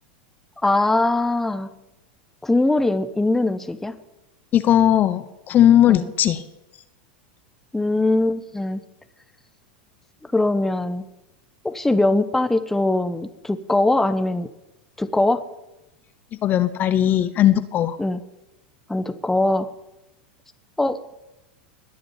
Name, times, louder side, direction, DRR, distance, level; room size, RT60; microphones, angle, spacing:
voice 1, 0.6-1.7 2.4-4.0 5.9-6.1 7.7-8.8 10.3-11.1 11.6-14.5 15.0-15.4 18.0-18.2 18.9-19.7 20.8-21.0, left 2 dB, 5° left, 10 dB, 1.1 m, -21 dB
voice 2, 4.5-6.4 16.4-18.0, left 11 dB, 35° left, 12 dB, 1.0 m, -18 dB
20.5 x 7.8 x 9.0 m, 0.94 s
supercardioid pair, 125°, 5 cm